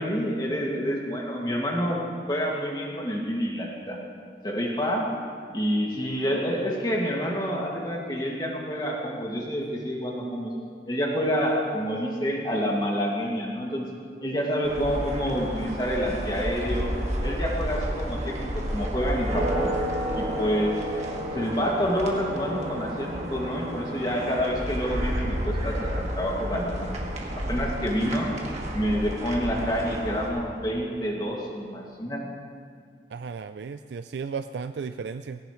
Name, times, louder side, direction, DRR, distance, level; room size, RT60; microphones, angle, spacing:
voice 1, 0.0-4.0 4.4-5.1 5.5-10.5 10.9-13.9 14.2-16.9 17.2-19.7 20.2-20.7 21.3-26.9 27.4-28.4 28.7-32.2, equal, 25° left, -2 dB, 2.1 m, -28 dB
sound 1, 14.6-30.3, equal, 35° right, 1.8 m, -31 dB
voice 2, 33.1-35.4, right 5 dB, 70° right, 10 dB, 0.4 m, -34 dB
19.0 x 17.5 x 3.2 m, 2.1 s
head